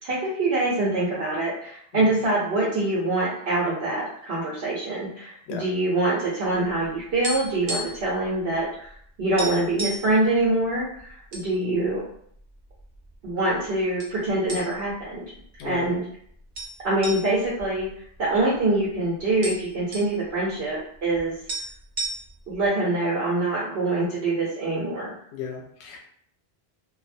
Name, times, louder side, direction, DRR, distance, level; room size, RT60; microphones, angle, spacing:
voice 1, 0.0-8.9 9.2-12.0 13.2-15.2 15.6-16.0 16.8-17.9 18.2-21.3 22.5-25.2, right 2 dB, 75° right, -6 dB, 1.0 m, -25 dB
sound 1, 6.8-8.1 8.4-8.6 8.9-9.0 9.4-10.1 10.8-11.5 11.9-12.0 12.7-13.3 14.0-14.2 14.5-15.0 15.4-15.5 16.5-18.6 18.9-19.0 19.2-20.1 21.2-21.3 21.5-22.5, right 1 dB, 55° right, 0.6 m, -33 dB
voice 2, 25.3-26.0, left 7 dB, 90° left, 1 dB, 0.8 m, -35 dB
2.5 x 2.0 x 2.5 m, 0.63 s
omnidirectional pair, 1.1 m